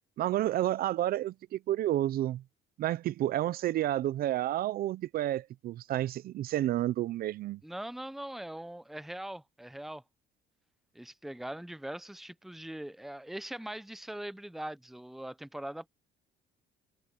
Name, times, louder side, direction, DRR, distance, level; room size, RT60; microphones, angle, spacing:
voice 1, 0.2-2.4 2.8-7.6, right 13 dB, 60° right, 0.6 m, -30 dB
voice 2, 7.6-10.0 10.9-15.9, right 1 dB, ahead, 0.7 m, -41 dB
cardioid pair, 110°, 17 cm